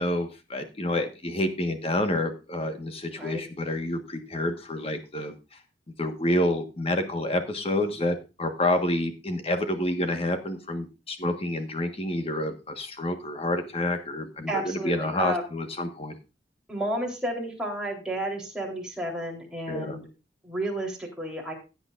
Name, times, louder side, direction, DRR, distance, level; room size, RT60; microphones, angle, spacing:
voice 1, 0.0-5.3 6.0-16.1 19.7-20.0, left 1 dB, 35° left, 7 dB, 1.5 m, -28 dB
voice 2, 14.5-15.4 16.7-20.1 20.4-21.5, right 1 dB, 5° right, -2 dB, 3.7 m, -31 dB
16.0 x 9.0 x 2.5 m, 0.29 s
head